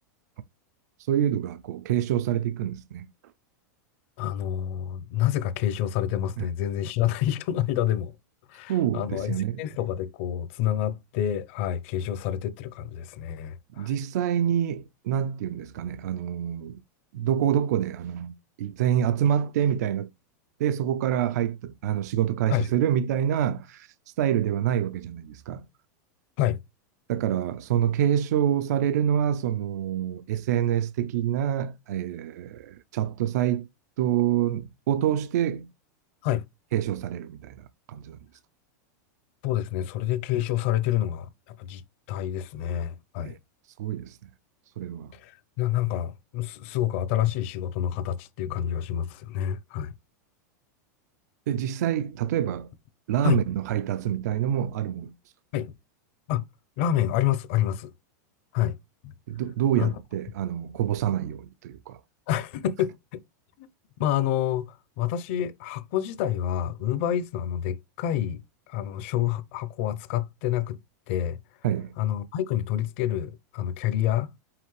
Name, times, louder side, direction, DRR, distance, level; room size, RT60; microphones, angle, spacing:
voice 1, 1.0-3.1 6.4-6.5 8.7-9.6 13.8-16.8 17.1-20.1 20.6-25.7 27.1-33.7 34.0-35.7 36.7-38.2 43.2-43.4 43.8-44.3 44.8-45.1 51.5-52.7 53.1-55.1 59.3-62.0 71.6-72.0, right 10 dB, 65° right, 0.4 m, -26 dB
voice 2, 4.2-8.1 8.5-13.9 22.5-22.7 26.4-26.6 36.2-36.4 39.4-41.3 41.6-41.8 42.1-43.3 45.1-49.9 53.2-53.4 55.5-55.7 56.3-56.4 56.8-57.9 58.5-58.8 59.0-59.1 59.8-59.9 62.3-63.2 63.6-63.7 64.0-68.4 68.7-70.8 71.1-71.4 72.0-74.3, left 11 dB, 40° left, 0.7 m, -28 dB
5.7 x 5.1 x 3.2 m
supercardioid pair, 175°, 10 cm